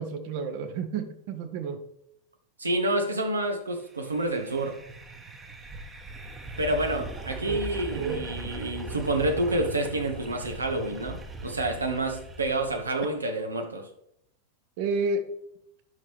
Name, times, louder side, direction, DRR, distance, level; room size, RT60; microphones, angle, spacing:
voice 1, 0.0-1.8 7.5-7.6 7.9-8.3 14.8-15.3, right 4 dB, 45° right, 8 dB, 1.0 m, -30 dB
voice 2, 2.6-4.8 6.6-13.9, right 1 dB, 80° right, 4 dB, 1.2 m, -28 dB
sound 1, 3.9-13.1, right 1 dB, 15° right, 1.1 m, -40 dB
10.5 x 6.0 x 3.4 m, 0.77 s
figure-of-eight pair, 90°, 0 cm